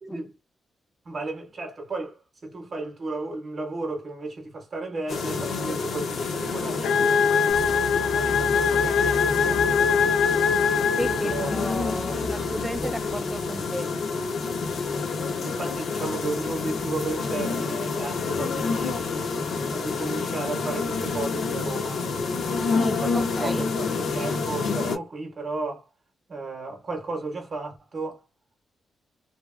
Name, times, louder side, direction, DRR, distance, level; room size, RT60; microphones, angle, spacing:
voice 1, 0.0-0.3 1.0-10.2 11.2-11.6 12.8-13.0 15.4-19.1 19.7-22.1 23.0-25.9 26.3-28.2, right 3 dB, 35° right, 0.8 m, -34 dB
sound 1, 5.1-25.0, left 4 dB, 65° left, 0.8 m, -28 dB
sound 2, 6.8-11.7, left 6 dB, 80° left, 0.4 m, -23 dB
sound 3, 7.5-13.6, left 3 dB, 30° left, 0.7 m, -39 dB
voice 2, 11.0-13.9 22.7-23.6, equal, ahead, 0.4 m, -33 dB
2.7 x 2.5 x 2.4 m
wide cardioid pair, 150°, 0 cm